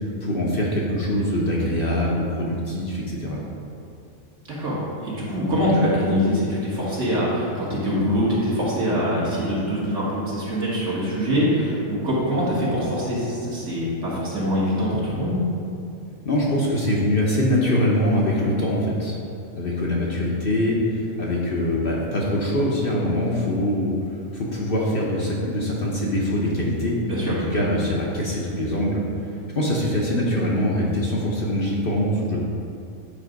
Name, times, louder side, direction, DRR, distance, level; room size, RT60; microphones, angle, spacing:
voice 1, 0.2-3.4 16.2-19.2 19.6-23.9 24.3-27.0 27.2-29.0 29.5-32.4, left 1 dB, 50° left, -4 dB, 0.9 m, -23 dB
voice 2, 4.5-15.4 27.1-27.6, equal, 60° right, -8 dB, 2.1 m, -24 dB
8.5 x 3.4 x 5.1 m, 2.6 s
omnidirectional pair, 1.4 m